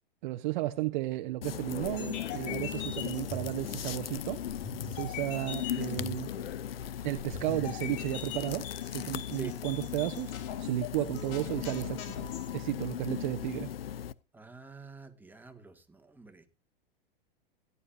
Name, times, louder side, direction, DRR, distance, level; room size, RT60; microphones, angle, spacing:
voice 1, 0.2-4.4 4.9-6.3 7.0-12.1 12.5-13.7, right 17 dB, 55° right, 1.1 m, -33 dB
sound 1, 1.4-14.1, left 10 dB, 75° left, 0.8 m, -38 dB
sound 2, 1.8-12.5, left 7 dB, 50° left, 4.7 m, -43 dB
voice 2, 14.3-16.5, right 3 dB, 5° right, 2.1 m, -47 dB
17.0 x 11.5 x 2.7 m
hypercardioid pair, 100°, 29 cm